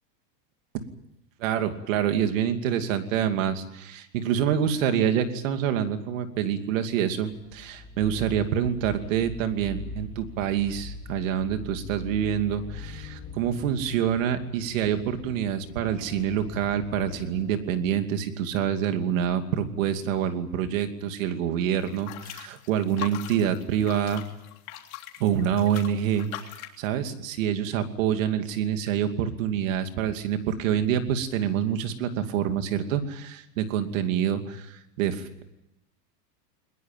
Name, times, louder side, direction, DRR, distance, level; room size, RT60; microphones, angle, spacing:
voice 1, 1.4-24.2 25.2-35.4, right 9 dB, 50° right, 8 dB, 2.7 m, -27 dB
sound 1, 7.3-18.0, left 3 dB, 15° left, 2.9 m, -42 dB
sound 2, 21.8-26.8, left 14 dB, 55° left, 3.5 m, -41 dB
22.0 x 20.5 x 9.2 m, 0.91 s
supercardioid pair, 170°, 49 cm